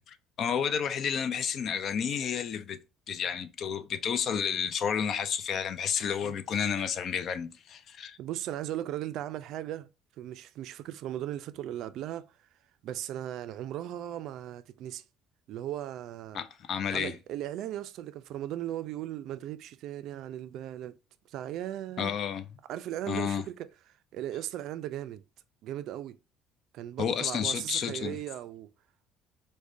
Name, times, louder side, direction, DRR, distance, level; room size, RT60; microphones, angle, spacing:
voice 1, 0.1-2.8 3.1-8.2 16.3-17.2 22.0-22.5 23.1-23.4 27.0-28.2, left 7 dB, 50° left, 0.4 m, -31 dB
voice 2, 8.2-9.9 10.2-12.3 12.8-15.0 15.5-16.4 16.9-21.0 21.3-22.1 22.7-23.7 24.1-25.2 25.6-26.2 26.7-28.7, right 12 dB, 65° right, 0.3 m, -37 dB
4.7 x 2.2 x 2.5 m
cardioid pair, 115°, 0 cm